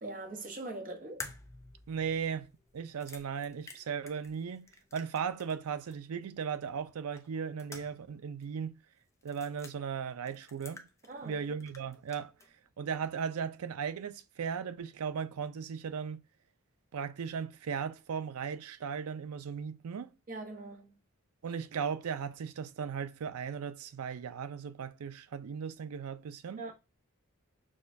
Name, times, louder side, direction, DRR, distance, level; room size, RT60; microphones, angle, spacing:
voice 1, 0.0-1.3 11.1-11.4 20.3-21.0 26.6-26.7, right 2 dB, 40° right, 1.0 m, -42 dB
sound 1, 1.2-5.6 5.9-6.0 7.2-8.2 8.4-8.5 9.2-9.7 10.3-11.3 11.6-12.5, left 3 dB, 15° left, 0.5 m, -49 dB
voice 2, 1.9-8.8 9.2-10.9 11.2-12.3 12.8-16.2 16.9-20.1 21.4-26.6, right 6 dB, 90° right, 0.4 m, -37 dB
6.3 x 2.3 x 2.6 m
head